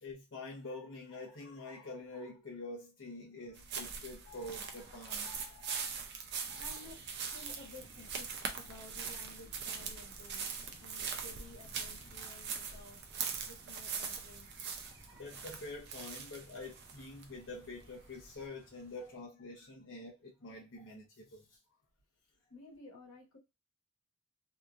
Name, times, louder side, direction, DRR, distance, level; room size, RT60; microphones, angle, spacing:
voice 1, 0.0-6.0 6.5-6.8 12.2-12.3 14.8-21.5, left 2 dB, 60° left, 0.7 m, -47 dB
sound 1, 3.5-18.4, right 6 dB, 55° right, 0.5 m, -42 dB
voice 2, 6.1-13.0 13.4-14.9 19.6-19.7 22.5-23.4, left 3 dB, 85° left, 1.2 m, -55 dB
sound 2, 6.4-19.2, left 1 dB, 35° left, 0.9 m, -62 dB
2.8 x 2.4 x 2.4 m
head